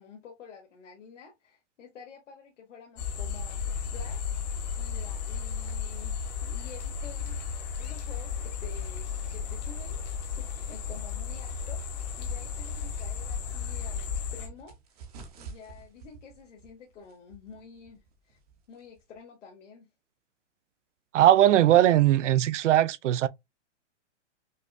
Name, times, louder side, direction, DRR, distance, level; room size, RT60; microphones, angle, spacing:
voice 1, 0.0-15.0 15.4-18.4 18.7-19.9, left 5 dB, 85° left, 1.1 m, -50 dB
sound 1, 3.0-14.5, left 6 dB, 35° left, 0.9 m, -34 dB
sound 2, 13.6-19.2, right 4 dB, 35° right, 0.7 m, -51 dB
voice 2, 21.1-23.3, right 12 dB, 85° right, 0.5 m, -20 dB
5.3 x 2.2 x 2.2 m
hypercardioid pair, 170°, 36 cm